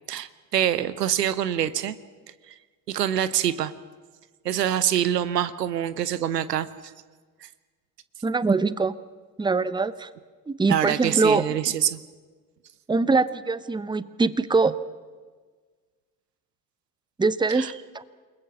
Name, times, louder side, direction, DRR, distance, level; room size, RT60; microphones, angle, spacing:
voice 1, 0.1-2.0 2.5-2.6 2.9-3.7 4.4-6.7 7.4-7.5 10.7-12.0 17.5-17.7, right 10 dB, 80° right, 16 dB, 0.8 m, -25 dB
voice 2, 8.2-9.0 9.4-10.1 10.5-11.4 12.9-14.7 17.2-17.7 17.9-18.0, right 3 dB, 10° right, 16 dB, 0.9 m, -23 dB
29.0 x 20.0 x 5.9 m, 1.4 s
figure-of-eight pair, 50°, 48 cm